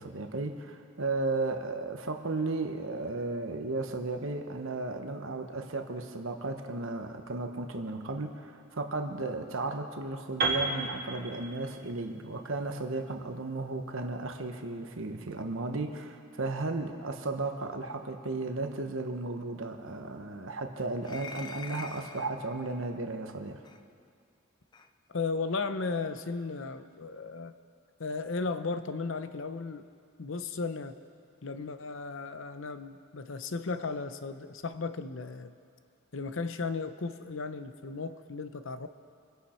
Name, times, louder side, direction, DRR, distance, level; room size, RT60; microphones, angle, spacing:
voice 1, 0.0-23.6, right 2 dB, 65° right, 5 dB, 1.1 m, -34 dB
Piano, 10.4-14.3, right 3 dB, 45° right, 2.0 m, -34 dB
sound 1, 21.0-22.4 23.6-23.8 24.7-24.9, left 4 dB, 20° left, 0.5 m, -44 dB
voice 2, 25.1-27.5 28.0-29.9 30.2-30.9 31.4-35.5 36.1-38.9, left 4 dB, 65° left, 10 dB, 0.7 m, -35 dB
25.5 x 10.5 x 4.4 m, 2.3 s
head